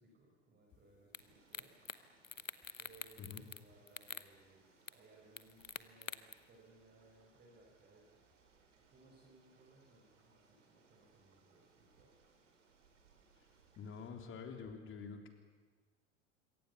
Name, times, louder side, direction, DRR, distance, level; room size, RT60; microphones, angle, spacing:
voice 1, 0.0-1.8 2.8-8.2 8.7-12.2, right 3 dB, 25° right, -1 dB, 6.1 m, -65 dB
sound 1, 1.1-1.2 1.5-2.0 2.2-3.6 3.9-4.3 4.9-5.0 5.4-6.3, left 5 dB, 85° left, 0.9 m, -45 dB
sound 2, 1.1-14.1, right 4 dB, 70° right, 4.5 m, -70 dB
voice 2, 13.8-15.3, left 5 dB, 30° left, 5 dB, 3.6 m, -47 dB
26.5 x 23.0 x 7.1 m, 1.5 s
figure-of-eight pair, 80°, 38 cm